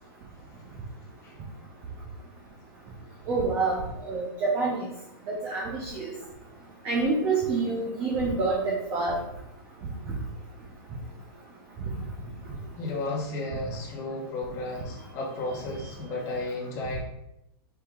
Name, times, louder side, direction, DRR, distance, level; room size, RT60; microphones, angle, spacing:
voice 1, 0.3-0.6 1.2-1.4 12.8-17.0, left 2 dB, 20° left, -3 dB, 1.0 m, -34 dB
voice 2, 3.3-3.8 4.1-4.9 5.3-6.1 6.8-9.1, right 3 dB, 20° right, -3 dB, 0.6 m, -27 dB
4.6 x 2.9 x 3.6 m, 0.83 s
supercardioid pair, 170°, 13 cm